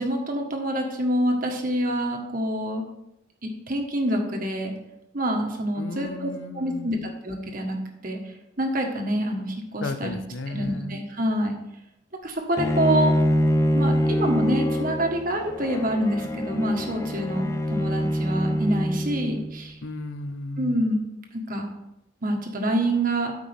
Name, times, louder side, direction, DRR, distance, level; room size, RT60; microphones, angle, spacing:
voice 1, 0.0-2.9 3.4-4.7 5.1-7.0 7.2-7.8 8.0-8.2 8.6-10.2 10.5-11.5 12.2-13.1 13.7-19.7 20.6-21.0 21.3-21.7 22.2-23.4, right 1 dB, 45° right, 2 dB, 1.4 m, -26 dB
voice 2, 5.8-7.1 9.8-11.0 19.8-20.8, left 3 dB, 70° left, 9 dB, 0.6 m, -34 dB
Bowed string instrument, 12.6-19.6, equal, 15° left, 0.5 m, -25 dB
13.0 x 5.2 x 3.5 m, 0.87 s
head